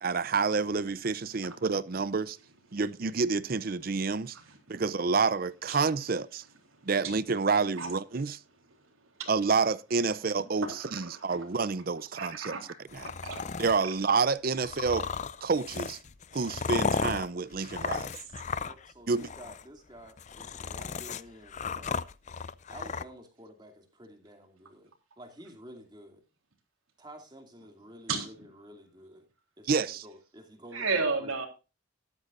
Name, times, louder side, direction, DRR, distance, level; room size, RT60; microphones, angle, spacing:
voice 1, 0.0-2.4 2.7-4.4 4.7-6.4 6.8-8.4 9.3-10.7 10.9-12.6 12.9-13.1 13.6-15.1 15.4-16.0 16.3-18.1 19.1-19.3 29.6-30.0, right 4 dB, 45° right, 0.5 m, -28 dB
voice 2, 4.3-4.8 5.7-5.8 6.7-7.1 7.8-7.9 9.1-9.3 10.6-11.2 12.2-12.6 13.0-13.4 13.8-13.9 18.1-18.2 28.1-28.3 30.7-31.5, right 4 dB, 85° right, 3.6 m, -34 dB
sound 1, 12.9-13.8 14.6-18.9 19.2-19.6 20.1-23.0, left 5 dB, 35° left, 0.5 m, -35 dB
voice 3, 18.7-21.9 22.7-24.9 25.2-26.2 27.0-29.3 29.6-31.3, equal, 20° right, 2.5 m, -50 dB
13.0 x 12.5 x 2.5 m
head